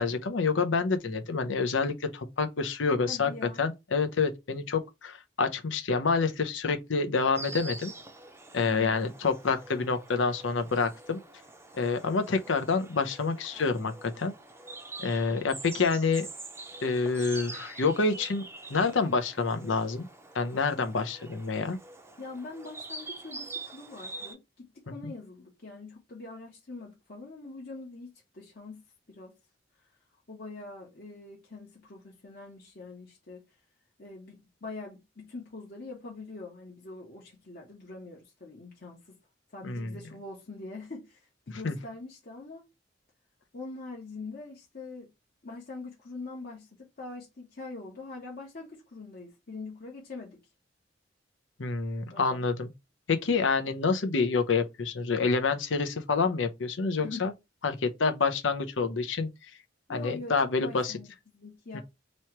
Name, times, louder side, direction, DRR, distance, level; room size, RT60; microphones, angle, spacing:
voice 1, 0.0-3.3 3.6-7.9 8.5-11.2 11.8-14.3 15.0-16.3 16.8-20.1 20.3-21.8 39.6-40.0 41.6-41.8 51.6-52.7 53.1-57.3 57.6-59.3 59.9-60.9 61.7-61.8, left 4 dB, 90° left, 0.7 m, -28 dB
voice 2, 3.1-3.6 8.6-9.1 22.2-28.8 29.1-29.3 29.8-29.9 30.3-33.5 34.0-39.1 39.5-42.6 43.5-45.1 45.4-50.4 52.1-52.4 57.0-57.3 59.9-61.8, left 3 dB, 55° left, 1.0 m, -43 dB
Insect, 7.3-24.3, right 3 dB, 15° right, 0.6 m, -45 dB
3.1 x 3.0 x 4.4 m
head